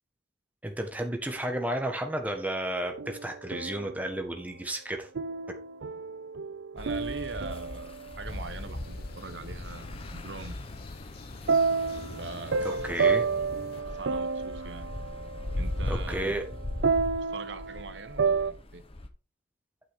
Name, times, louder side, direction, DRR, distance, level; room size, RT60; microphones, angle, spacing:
voice 1, 0.6-5.1 5.5-5.6 12.8-13.2 15.9-16.5, right 1 dB, 10° right, 3 dB, 1.5 m, -32 dB
sound 1, 2.8-4.1 5.2-8.4 11.5-18.5, right 5 dB, 85° right, 0.5 m, -30 dB
voice 2, 6.7-10.6 12.1-13.2 13.7-14.9 15.5-16.4 17.3-18.8, right 4 dB, 70° right, 10 dB, 0.9 m, -42 dB
sound 2, 6.8-19.1, left 1 dB, 30° left, 1.0 m, -39 dB
sound 3, 8.3-13.8, left 3 dB, 55° left, 0.8 m, -45 dB
8.9 x 7.5 x 3.7 m, 0.33 s
head